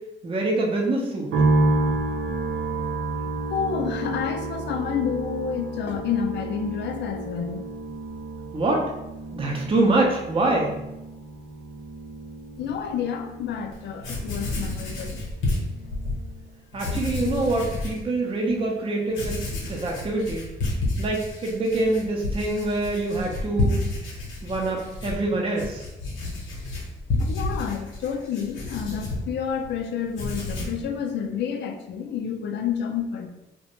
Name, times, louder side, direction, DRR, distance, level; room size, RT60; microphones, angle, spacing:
voice 1, 0.2-1.3 8.5-8.9 9.3-10.7 16.7-19.4 19.6-20.4 21.0-23.8 24.4-25.8, right 2 dB, 25° right, -1 dB, 0.5 m, -25 dB
sound 1, 1.3-16.6 16.8-17.7, right 2 dB, 70° right, 0.6 m, -30 dB
voice 2, 3.5-7.6 12.6-15.3 27.2-33.3, left 7 dB, 60° left, 6 dB, 0.4 m, -29 dB
Writing, 13.7-13.8 14.0-16.2 16.7-18.0 18.5-18.6 19.1-29.7 30.0-30.8, left 2 dB, 80° left, 0.9 m, -30 dB
2.4 x 2.1 x 2.9 m, 0.93 s
cardioid pair, 90°, 20 cm